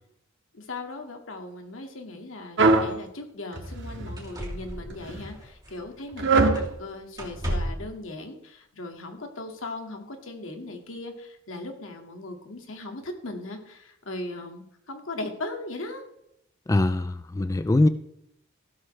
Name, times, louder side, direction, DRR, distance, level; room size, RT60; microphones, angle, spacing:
voice 1, 0.5-16.0, left 2 dB, 80° left, 4 dB, 2.1 m, -38 dB
sound 1, 2.6-2.9 3.5-4.2 4.9-5.3 6.2-6.6, right 3 dB, 65° right, 1.8 m, -22 dB
sound 2, 2.9-3.0 3.6-3.8 4.2-6.1 6.5-6.8 7.1-7.9 9.0-9.1, equal, 20° right, 2.9 m, -35 dB
voice 2, 16.7-17.9, left 2 dB, 15° left, 12 dB, 0.3 m, -22 dB
15.5 x 13.0 x 3.3 m, 0.76 s
head